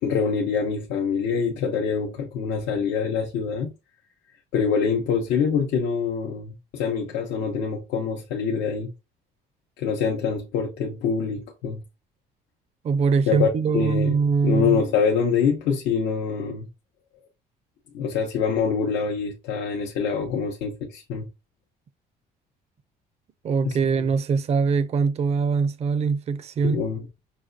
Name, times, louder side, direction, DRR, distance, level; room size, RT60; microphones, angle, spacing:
voice 1, 0.0-3.7 4.5-8.9 9.8-11.8 13.3-14.1 14.4-16.7 17.9-21.3 23.6-23.8 26.6-27.1, left 6 dB, 90° left, 0.7 m, -25 dB
voice 2, 12.8-14.8 23.4-26.8, right 5 dB, 40° right, 0.5 m, -22 dB
5.9 x 2.2 x 2.5 m
cardioid pair, 110°, 17 cm